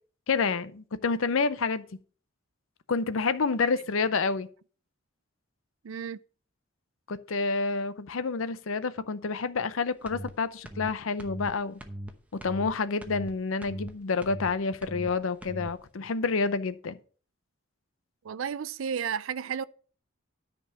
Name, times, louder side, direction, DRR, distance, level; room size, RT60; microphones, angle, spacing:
voice 1, 0.3-1.8 2.9-4.5 7.1-11.8 12.3-17.0, left 4 dB, 80° left, 0.6 m, -28 dB
voice 2, 5.8-6.2 18.2-19.6, right 7 dB, 75° right, 0.4 m, -32 dB
sound 1, 10.0-10.3 10.6-10.9 11.2-11.5 11.8-12.1 12.4-12.7 13.0-13.3 13.6-13.9 14.2-14.5 14.8-15.1 15.4-15.7, equal, 5° right, 0.8 m, -39 dB
10.0 x 5.3 x 5.8 m
head